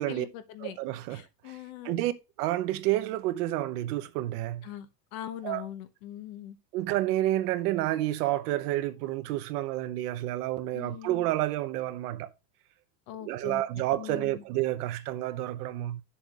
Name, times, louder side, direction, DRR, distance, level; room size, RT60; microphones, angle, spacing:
voice 1, 0.0-0.8 1.1-2.0 4.6-4.9 5.1-6.6 10.7-11.1 13.1-14.4, left 12 dB, 60° left, 1.1 m, -41 dB
voice 2, 0.6-1.6 1.8-2.1 2.4-4.7 5.4-5.6 6.7-12.3 13.2-16.0, right 15 dB, 75° right, 0.9 m, -30 dB
9.9 x 7.1 x 2.4 m
supercardioid pair, 165°, 47 cm